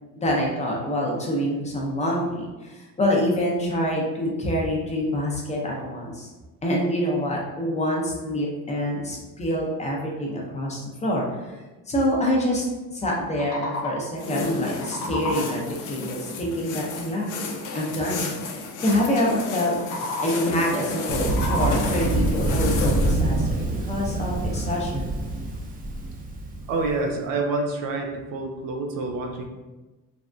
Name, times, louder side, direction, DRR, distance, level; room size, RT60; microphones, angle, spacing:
voice 1, 0.1-6.3 6.6-11.6 11.9-15.6 15.9-17.3 17.7-19.7 20.2-25.1, equal, 20° left, -2 dB, 0.5 m, -26 dB
sound 1, 13.3-14.2 14.5-15.7 19.7-20.6 21.0-22.1, left 1 dB, 85° left, 0.9 m, -32 dB
sound 2, 14.2-23.2, left 4 dB, 65° left, 0.5 m, -32 dB
Thunder, 21.1-26.9, right 1 dB, 25° right, 0.4 m, -26 dB
voice 2, 26.7-29.5, right 3 dB, 90° right, 3 dB, 0.6 m, -27 dB
3.4 x 2.2 x 2.5 m, 1.1 s
cardioid pair, 140°, 33 cm